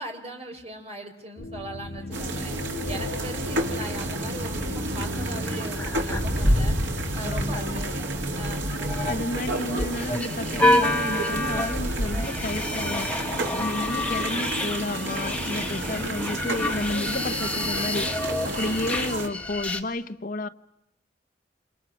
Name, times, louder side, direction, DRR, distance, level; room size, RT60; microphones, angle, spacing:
voice 1, 0.0-2.5 2.9-6.8 7.1-9.0 18.6-19.0, right 1 dB, 35° right, 4.3 m, -39 dB
sound 1, 1.4-7.5, left 1 dB, 90° left, 2.0 m, -37 dB
sound 2, 2.1-19.3, right 1 dB, 90° right, 3.4 m, -30 dB
sound 3, 3.6-4.1 4.3-4.4 4.7-6.6 8.5-19.8, left 2 dB, 5° left, 1.7 m, -29 dB
voice 2, 7.2-7.9 9.0-20.5, left 2 dB, 45° left, 1.0 m, -32 dB
29.0 x 28.0 x 6.1 m
head